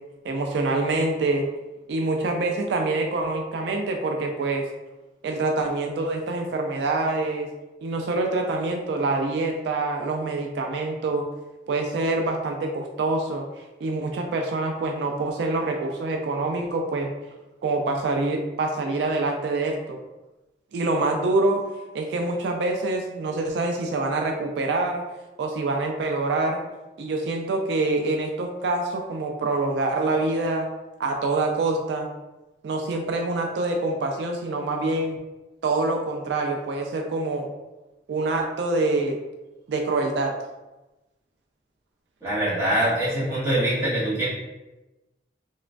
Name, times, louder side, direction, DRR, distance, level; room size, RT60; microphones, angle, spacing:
voice 1, 0.2-1.5 1.9-4.7 5.2-7.5 7.8-11.3 11.7-13.5 13.8-17.1 17.6-20.0 20.7-21.6 21.9-25.0 25.4-26.6 27.0-30.7 31.0-32.1 32.6-35.2 35.6-37.5 38.1-39.2 39.7-40.3, right 2 dB, 80° right, 3 dB, 0.3 m, -25 dB
voice 2, 42.2-44.3, right 1 dB, 15° right, -10 dB, 0.9 m, -23 dB
3.0 x 2.1 x 2.4 m, 1.1 s
head